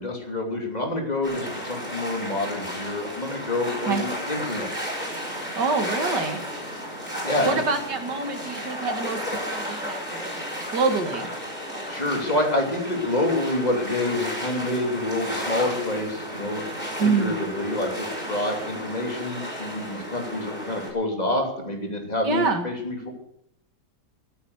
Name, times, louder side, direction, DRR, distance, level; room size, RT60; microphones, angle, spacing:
voice 1, 0.0-4.7 7.2-7.6 11.9-23.1, left 1 dB, 25° left, 1 dB, 3.0 m, -27 dB
sound 1, 1.2-20.9, equal, 5° left, 4.9 m, -33 dB
voice 2, 5.6-6.4 7.5-9.2 9.5-10.5 10.7-11.3 17.0-17.3 22.2-22.7, right 4 dB, 80° right, 5 dB, 2.5 m, -25 dB
14.5 x 9.0 x 8.1 m, 0.75 s
omnidirectional pair, 1.8 m